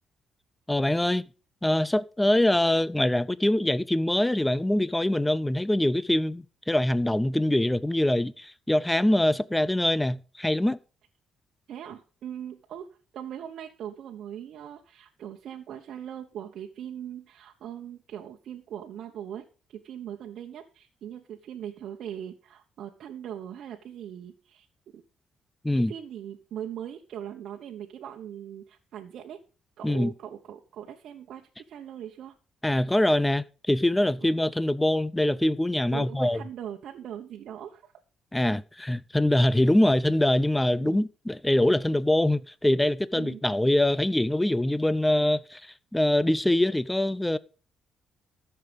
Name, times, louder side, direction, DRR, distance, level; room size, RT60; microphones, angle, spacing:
voice 1, 0.7-1.2 1.6-10.8 25.6-25.9 29.8-30.1 32.6-36.4 38.3-47.4, left 1 dB, 10° left, 0.5 m, -24 dB
voice 2, 11.7-12.9 13.1-19.4 19.7-24.7 24.9-25.0 25.7-29.4 29.8-32.3 35.9-37.8 38.3-38.4 40.8-41.0 43.1-43.4, right 10 dB, 70° right, 1.1 m, -40 dB
14.5 x 6.7 x 5.2 m
cardioid pair, 100°, 0 cm